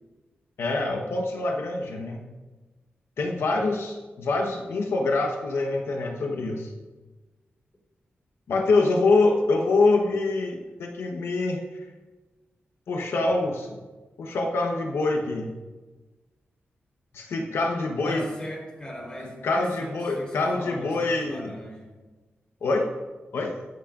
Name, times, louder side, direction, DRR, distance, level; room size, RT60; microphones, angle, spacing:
voice 1, 0.6-2.3 3.2-6.7 8.5-11.8 12.9-13.8 14.2-15.5 17.1-18.2 19.4-21.5 22.6-22.9 23.3-23.5, left 3 dB, 85° left, 1 dB, 1.1 m, -25 dB
voice 2, 18.0-21.9, equal, 20° left, -1 dB, 3.8 m, -39 dB
22.0 x 8.7 x 2.5 m, 1.3 s
wide cardioid pair, 140°, 4 cm